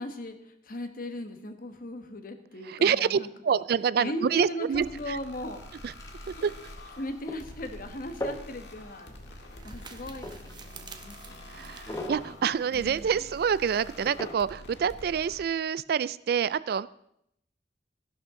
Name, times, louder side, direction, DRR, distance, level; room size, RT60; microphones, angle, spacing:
voice 1, 0.0-3.6 4.0-5.8 6.3-6.5 7.0-9.1 9.6-11.8 12.7-13.1, left 1 dB, 50° left, 7 dB, 1.3 m, -38 dB
voice 2, 2.7-5.2 5.8-5.9 6.4-6.5 11.5-16.9, right 7 dB, 60° right, 18 dB, 0.3 m, -27 dB
sound 1, 4.7-15.4, left 1 dB, 75° left, 1.7 m, -48 dB
sound 2, 5.3-14.3, left 1 dB, 20° left, 1.0 m, -43 dB
sound 3, 9.4-13.2, right 6 dB, 25° right, 0.9 m, -51 dB
15.0 x 11.5 x 3.7 m, 0.76 s
head